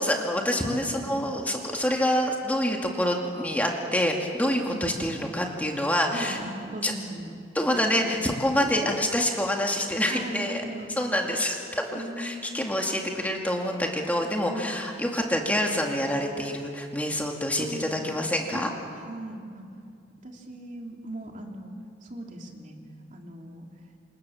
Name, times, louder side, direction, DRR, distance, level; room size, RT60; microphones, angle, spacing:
voice 1, 0.0-6.4 6.8-6.9 7.5-10.6 11.0-18.7, left 1 dB, 10° left, 1 dB, 2.3 m, -27 dB
voice 2, 0.5-1.2 4.5-5.1 6.1-7.4 7.7-8.2 8.6-8.9 10.1-10.9 11.2-11.4 11.9-12.8 14.4-14.9 17.6-18.0 18.5-18.6 18.9-19.6 20.2-21.7 22.0-22.8 23.1-23.7, right 1 dB, 40° right, 1 dB, 3.2 m, -38 dB
28.0 x 27.5 x 7.2 m, 2.4 s
head